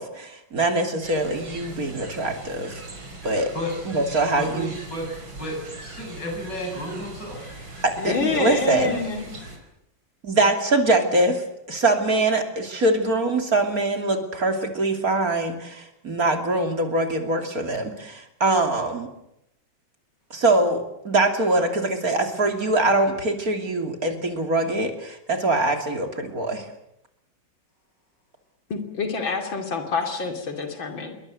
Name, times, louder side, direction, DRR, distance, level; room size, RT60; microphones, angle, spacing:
voice 1, 0.0-2.8 3.2-3.5 3.8-4.7 7.8-9.0 10.2-11.4 11.7-19.1 20.3-26.7, right 2 dB, 50° right, 4 dB, 3.3 m, -23 dB
sound 1, 1.0-9.6, right 2 dB, 85° right, 5.2 m, -40 dB
voice 2, 4.3-7.5, equal, 65° left, 2 dB, 8.8 m, -32 dB
voice 3, 8.0-9.3 28.7-31.1, left 4 dB, 85° left, 4 dB, 3.4 m, -27 dB
27.0 x 23.0 x 7.9 m, 0.84 s
omnidirectional pair, 2.1 m